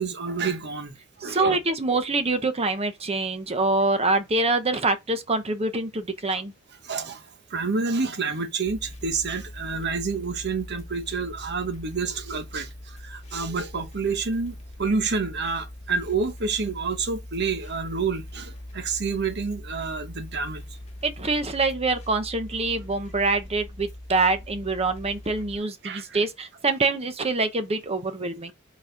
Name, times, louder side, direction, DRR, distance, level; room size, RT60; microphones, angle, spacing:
voice 1, 0.0-1.6 6.3-6.4 6.8-20.6 25.8-26.2, right 4 dB, 55° right, 1.0 m, -29 dB
voice 2, 1.2-6.5 21.0-28.5, right 3 dB, 30° right, 0.8 m, -25 dB
sound 1, 8.7-25.6, left 1 dB, 35° left, 1.4 m, -41 dB
4.7 x 4.2 x 5.0 m
head